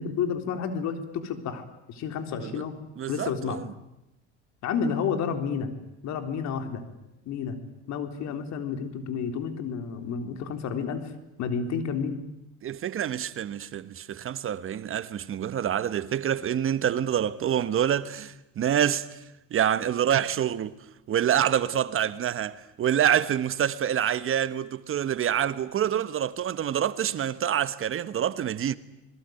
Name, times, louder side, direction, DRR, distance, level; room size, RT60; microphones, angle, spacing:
voice 1, 0.0-2.7 3.1-3.6 4.6-5.7 6.0-6.8 7.3-7.6 7.9-11.0 11.4-12.2, left 6 dB, 60° left, 3.8 m, -30 dB
voice 2, 3.0-3.6 12.6-19.2 19.5-20.7 21.1-28.8, right 9 dB, 45° right, 1.3 m, -27 dB
26.5 x 21.5 x 9.4 m
supercardioid pair, 95°, 30 cm